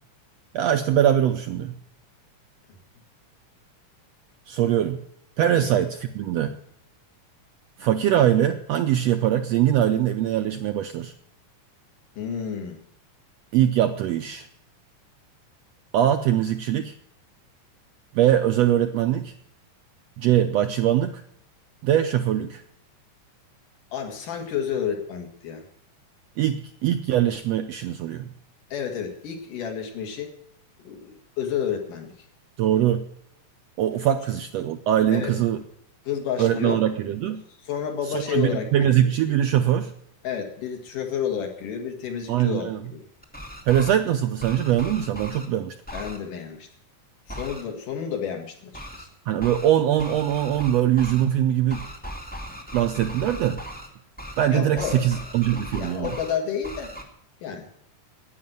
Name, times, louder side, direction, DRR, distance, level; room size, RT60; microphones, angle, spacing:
voice 1, 0.5-1.7 4.5-5.0 5.4-6.6 7.8-11.1 13.5-14.5 15.9-16.9 18.1-19.3 20.2-21.2 21.8-22.6 26.4-28.3 32.6-33.0 33.8-35.6 36.4-37.4 38.1-39.9 42.3-42.8 43.7-45.7 49.3-51.9 52.7-53.6 54.4-56.1, right 11 dB, 75° right, 7 dB, 1.5 m, -22 dB
voice 2, 12.2-12.8 23.9-25.6 28.7-30.3 30.9-32.3 35.1-35.4 36.1-36.8 37.6-39.0 40.2-43.0 45.9-46.7 47.3-49.1 54.5-55.1 55.7-56.9 57.4-57.8, left 8 dB, 85° left, 3 dB, 3.6 m, -30 dB
sound 1, 43.2-44.0 44.4-45.5 45.9-46.2 47.3-47.6 48.7-49.0 49.4-49.7 50.0-51.2 51.7-53.9 54.2-54.5 54.8-56.3 56.6-57.0, right 1 dB, 5° left, 1.3 m, -38 dB
11.0 x 9.5 x 9.0 m, 0.72 s
omnidirectional pair, 3.6 m